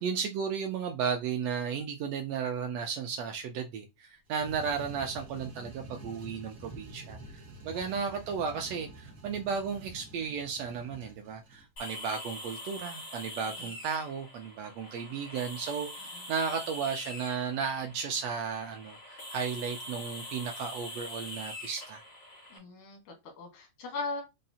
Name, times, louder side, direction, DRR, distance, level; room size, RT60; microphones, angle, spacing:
voice 1, 0.0-22.0, right 6 dB, 80° right, 1.5 m, -34 dB
sound 1, 4.3-11.7, right 2 dB, 60° right, 0.9 m, -47 dB
voice 2, 7.7-8.1 13.6-13.7 16.0-16.3 22.5-24.2, left 3 dB, 85° left, 2.6 m, -40 dB
sound 2, 11.8-22.6, left 1 dB, 60° left, 0.6 m, -44 dB
5.5 x 2.0 x 2.6 m
omnidirectional pair, 3.3 m